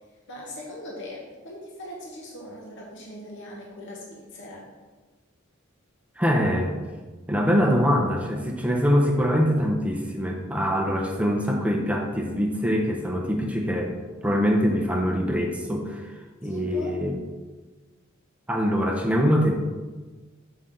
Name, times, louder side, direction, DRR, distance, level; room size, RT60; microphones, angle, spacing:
voice 1, 0.3-4.6 16.4-17.0, left 1 dB, 65° left, -2 dB, 1.1 m, -40 dB
voice 2, 6.2-6.7 7.3-14.0 14.2-16.1 16.4-17.2 18.5-19.6, equal, 5° right, 1 dB, 0.5 m, -23 dB
5.6 x 5.2 x 3.8 m, 1.3 s
head